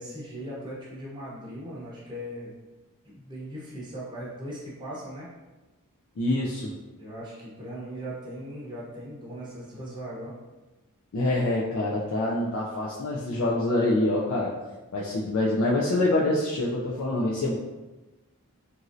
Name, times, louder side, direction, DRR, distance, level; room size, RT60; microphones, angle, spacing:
voice 1, 0.0-2.5 3.0-5.3 7.0-10.3, equal, 20° right, -8 dB, 0.7 m, -39 dB
voice 2, 6.2-6.7 11.1-14.5 14.9-17.6, left 2 dB, 60° left, -5 dB, 0.4 m, -25 dB
3.0 x 2.6 x 2.5 m, 1.1 s
head